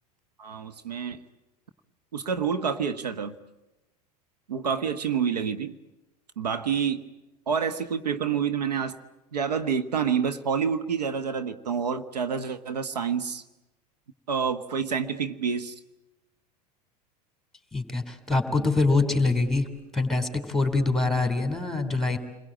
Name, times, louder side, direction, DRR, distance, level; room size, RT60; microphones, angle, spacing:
voice 1, 0.4-1.2 2.1-3.4 4.5-5.7 6.4-7.0 7.5-9.0 9.3-13.4 14.3-15.7, right 7 dB, 80° right, 10 dB, 1.3 m, -28 dB
voice 2, 17.7-19.7 19.9-22.2, left 3 dB, ahead, 7 dB, 3.6 m, -24 dB
29.5 x 21.5 x 8.9 m, 1.0 s
hypercardioid pair, 85°, 20 cm